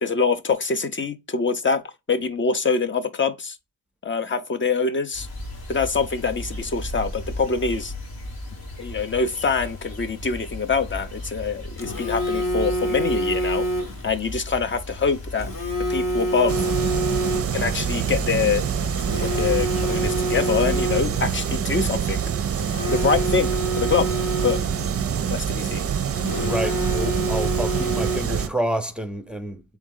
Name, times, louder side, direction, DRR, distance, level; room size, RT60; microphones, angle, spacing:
voice 1, 0.0-1.8 2.1-3.6 4.0-5.3 5.7-7.9 8.8-13.7 14.0-15.5 15.9-16.6 17.5-18.7 19.2-22.2 22.9-24.1 24.4-24.6 25.2-25.8, left 5 dB, 35° left, 0.6 m, -24 dB
sound 1, 5.1-21.6, left 1 dB, 90° left, 1.7 m, -36 dB
Telephone, 11.8-14.1 15.4-17.8 19.0-21.3 22.6-24.9 26.2-28.5, right 1 dB, 70° left, 1.2 m, -27 dB
sound 2, 16.5-28.5, right 8 dB, 45° right, 0.5 m, -26 dB
voice 2, 26.4-29.6, right 1 dB, 5° right, 0.6 m, -28 dB
4.0 x 3.5 x 3.7 m
cardioid pair, 85°, 34 cm